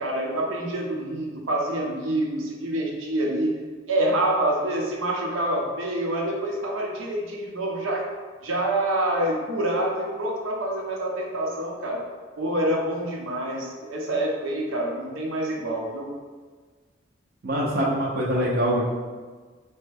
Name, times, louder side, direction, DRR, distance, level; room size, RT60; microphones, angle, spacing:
voice 1, 0.0-3.6 3.9-8.1 8.4-12.0 12.4-16.1, right 1 dB, 85° right, -1 dB, 0.7 m, -27 dB
voice 2, 17.4-18.9, equal, 50° right, -4 dB, 0.5 m, -24 dB
4.5 x 2.1 x 3.3 m, 1.5 s
head